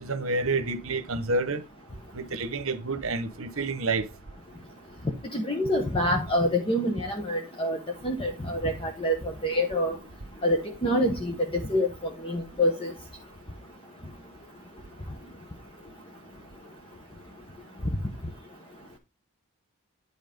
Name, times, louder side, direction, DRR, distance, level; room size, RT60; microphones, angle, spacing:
voice 1, 0.0-1.6 2.1-4.0, right 3 dB, 65° right, 1.1 m, -29 dB
voice 2, 5.3-7.8 8.0-9.9 10.4-11.9 12.2-12.9, equal, 25° left, 1.2 m, -26 dB
10.0 x 4.1 x 5.3 m
head